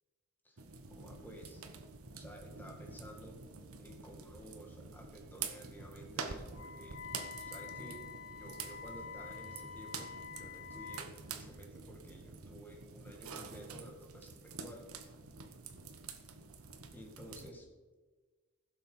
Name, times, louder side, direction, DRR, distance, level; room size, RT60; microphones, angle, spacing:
sound 1, 0.6-17.5, right 5 dB, 80° right, 1.1 m, -47 dB
voice 1, 0.9-1.6 2.1-3.4 3.8-7.0 7.4-8.1 8.4-14.9 16.9-17.7, equal, 10° left, 1 dB, 1.6 m, -53 dB
Wind instrument woodwind instrument, 6.5-11.1, left 6 dB, 85° left, 2.5 m, -47 dB
sound 2, 9.3-12.6, right 1 dB, 60° right, 4.6 m, -62 dB
16.0 x 7.1 x 5.4 m, 1.4 s
head